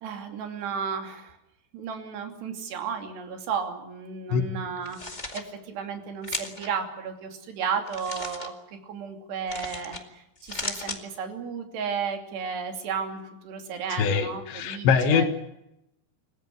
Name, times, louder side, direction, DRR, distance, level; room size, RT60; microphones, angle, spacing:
voice 1, 0.0-1.4 1.7-8.5 8.8-15.3, right 6 dB, 75° right, 4 dB, 4.9 m, -33 dB
sound 1, 4.8-5.4 6.2-6.7 7.9-8.5 9.5-10.0 10.4-11.0, left 2 dB, 25° left, 0.9 m, -35 dB
voice 2, 13.9-15.3, left 6 dB, 90° left, 7 dB, 4.0 m, -23 dB
27.5 x 15.0 x 9.7 m, 0.84 s
omnidirectional pair, 4.9 m